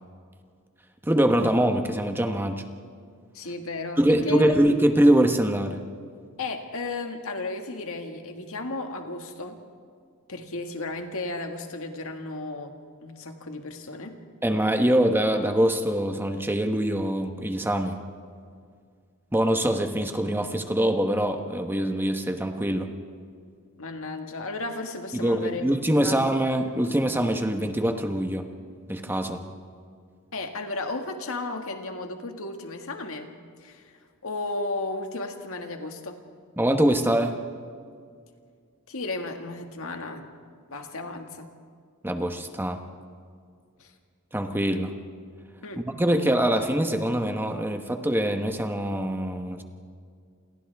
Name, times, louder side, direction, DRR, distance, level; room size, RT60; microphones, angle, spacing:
voice 1, 1.0-2.6 4.0-5.8 14.4-18.0 19.3-22.9 25.1-28.5 28.9-29.4 36.6-37.4 42.0-42.8 44.3-44.9 45.9-49.6, right 1 dB, 10° right, 5 dB, 1.2 m, -24 dB
voice 2, 3.3-4.8 6.4-9.6 10.3-14.2 23.8-25.6 26.0-26.2 30.3-33.3 33.6-33.9 34.2-36.2 38.9-40.3 40.7-41.5 43.8-43.9 45.6-45.8, left 2 dB, 65° left, 4 dB, 2.0 m, -34 dB
29.0 x 28.0 x 3.6 m, 2.1 s
head